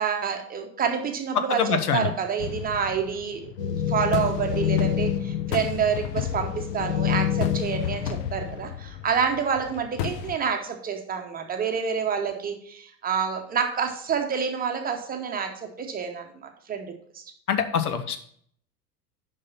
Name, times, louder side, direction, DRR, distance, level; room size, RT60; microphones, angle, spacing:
voice 1, 0.0-16.9 17.1-17.2, right 7 dB, 20° right, 4 dB, 0.9 m, -28 dB
voice 2, 1.3-2.1 17.5-18.2, left 7 dB, 70° left, 9 dB, 1.0 m, -25 dB
sound 1, 2.4-10.4, left 10 dB, 40° left, 0.5 m, -34 dB
sound 2, 3.6-8.7, left 9 dB, 85° left, 0.7 m, -28 dB
6.5 x 5.6 x 5.6 m, 0.63 s
figure-of-eight pair, 85°, 48 cm